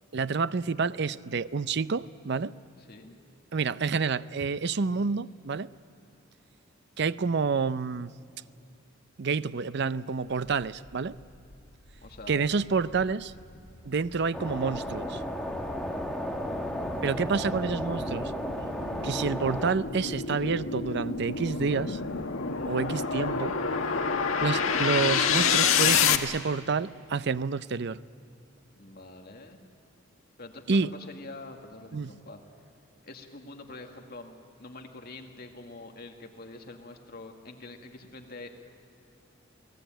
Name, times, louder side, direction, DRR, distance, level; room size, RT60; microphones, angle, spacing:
voice 1, 0.1-2.5 3.5-5.7 7.0-8.1 9.2-11.2 12.3-13.3 13.8-15.2 17.0-18.3 19.0-22.0 22.6-23.6 24.4-28.0 30.7-30.9 31.9-32.1, right 5 dB, 55° right, 16 dB, 0.6 m, -28 dB
voice 2, 2.8-3.2 12.0-12.4 28.7-29.6 30.4-32.4 33.0-38.5, left 2 dB, 50° left, 4 dB, 2.1 m, -45 dB
sound 1, 11.4-11.5 12.0-26.2, left 6 dB, 85° left, 1.5 m, -29 dB
sound 2, 14.3-19.7, equal, ahead, 1.8 m, -33 dB
29.0 x 19.0 x 9.1 m, 2.6 s
head